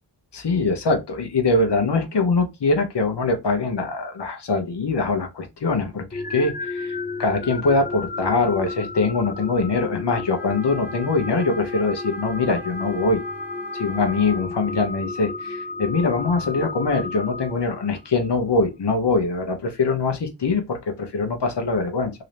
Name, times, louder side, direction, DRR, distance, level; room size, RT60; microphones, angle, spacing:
voice 1, 0.3-13.2 13.7-22.1, left 3 dB, 75° left, 1.0 m, -23 dB
sound 1, 6.1-18.1, left 3 dB, 20° left, 0.6 m, -32 dB
sound 2, 10.3-14.5, right 1 dB, 5° right, 1.1 m, -41 dB
3.8 x 2.8 x 3.4 m
wide cardioid pair, 65°, 42 cm